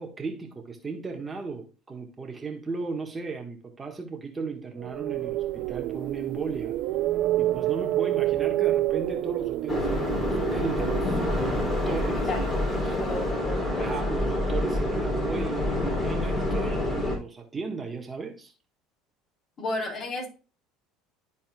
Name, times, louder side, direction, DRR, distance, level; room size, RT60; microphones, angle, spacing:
voice 1, 0.0-6.8 7.4-12.3 12.8-13.0 13.8-18.5, right 4 dB, 25° right, 1.5 m, -36 dB
sound 1, 4.8-12.9, right 15 dB, 65° right, 0.4 m, -28 dB
sound 2, 9.7-17.2, left 1 dB, 25° left, 3.1 m, -27 dB
voice 2, 13.0-13.9 19.6-20.3, left 2 dB, 40° left, 3.7 m, -33 dB
12.5 x 4.2 x 2.3 m
hypercardioid pair, 80°, 0 cm